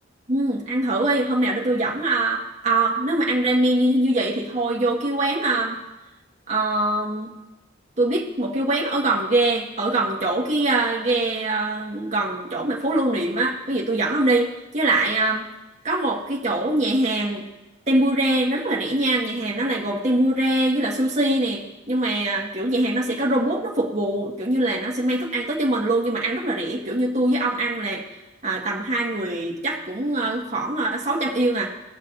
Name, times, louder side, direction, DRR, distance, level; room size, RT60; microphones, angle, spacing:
voice 1, 0.3-5.8 6.5-7.3 8.0-15.5 15.8-17.5 17.9-28.0 28.4-31.7, right 2 dB, 35° right, -3 dB, 1.6 m, -23 dB
19.0 x 6.5 x 2.6 m, 0.99 s
head